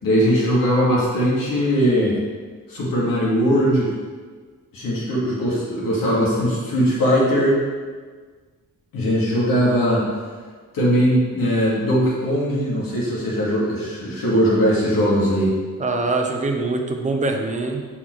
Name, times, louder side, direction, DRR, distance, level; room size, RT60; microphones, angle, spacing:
voice 1, 0.0-2.2 2.7-3.9 4.7-7.6 8.9-10.0 10.7-15.6, equal, 90° left, -6 dB, 2.5 m, -20 dB
voice 2, 15.8-17.9, right 3 dB, 20° right, 2 dB, 0.7 m, -23 dB
6.8 x 5.6 x 4.7 m, 1.5 s
wide cardioid pair, 160°, 33 cm